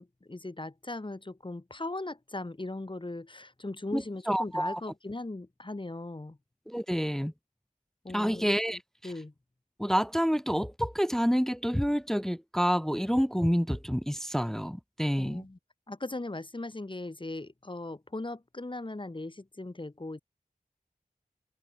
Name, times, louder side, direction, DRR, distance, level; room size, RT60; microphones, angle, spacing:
voice 1, 0.0-6.4 8.0-9.3 15.2-15.6 15.9-20.2, left 2 dB, 35° left, 2.8 m, -39 dB
voice 2, 3.9-4.8 6.7-7.3 8.1-8.8 9.8-15.4, equal, 5° left, 0.5 m, -28 dB
open air
wide cardioid pair, 70°, 15 cm